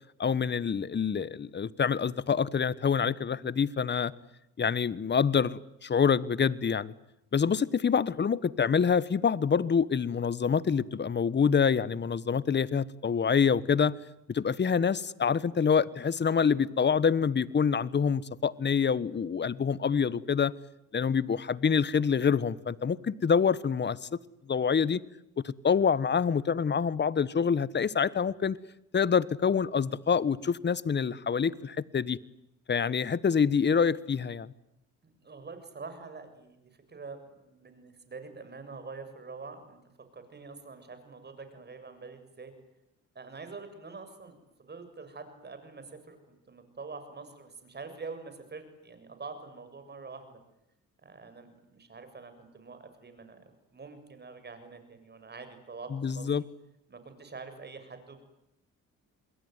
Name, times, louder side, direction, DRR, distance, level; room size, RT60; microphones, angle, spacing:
voice 1, 0.2-4.1 4.6-6.9 7.3-13.9 14.3-20.5 20.9-24.1 24.5-25.0 25.4-28.6 28.9-32.2 32.7-34.5 55.9-56.4, left 6 dB, 35° left, 19 dB, 1.3 m, -26 dB
voice 2, 35.0-39.8 40.1-42.5 43.2-50.4 51.0-53.4 53.7-56.3 56.9-58.2, right 4 dB, 35° right, 9 dB, 7.3 m, -45 dB
28.0 x 22.0 x 9.6 m, 0.85 s
cardioid pair, 90°, 30 cm